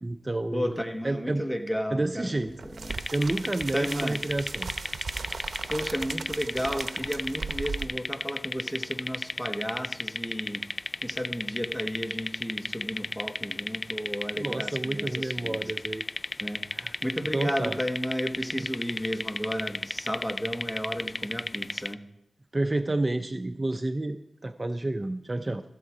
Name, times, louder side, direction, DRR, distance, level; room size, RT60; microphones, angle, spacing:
voice 1, 0.0-0.7 1.0-1.4 1.9-2.5 3.1-4.7 14.3-16.1 16.7-16.9 17.3-17.8 22.5-24.2 24.4-25.6, right 2 dB, 35° right, 9 dB, 0.6 m, -29 dB
voice 2, 0.5-3.0 3.7-4.2 5.7-10.6 11.0-15.6 16.4-16.7 17.0-22.0, equal, 10° left, 6 dB, 1.4 m, -33 dB
sound 1, 2.4-7.9, right 4 dB, 80° right, 0.7 m, -38 dB
sound 2, 2.9-21.9, left 2 dB, 45° left, 0.4 m, -34 dB
15.0 x 7.6 x 4.9 m, 0.80 s
cardioid pair, 50°, 0 cm